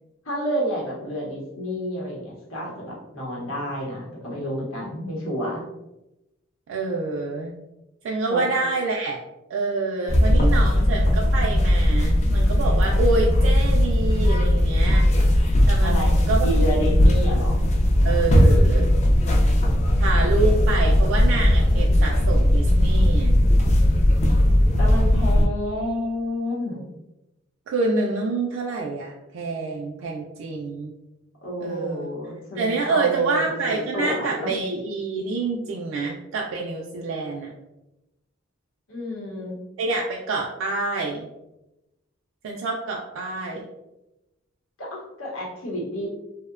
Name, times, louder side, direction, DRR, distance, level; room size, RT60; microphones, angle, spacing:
voice 1, 0.3-5.6 8.3-8.5 15.8-17.6 24.2-26.8 31.4-34.6 38.9-39.6 44.8-46.1, equal, 85° left, -4 dB, 0.8 m, -30 dB
voice 2, 6.7-7.5 8.0-9.2 9.5-15.1 15.7-16.5 18.0-18.9 20.0-23.3 27.7-30.9 31.6-32.1 32.6-37.5 39.8-41.3 42.4-43.7, right 3 dB, 65° right, -1 dB, 0.3 m, -27 dB
sound 1, 10.1-25.5, left 1 dB, 35° left, 0.3 m, -18 dB
2.7 x 2.1 x 2.4 m, 0.94 s
head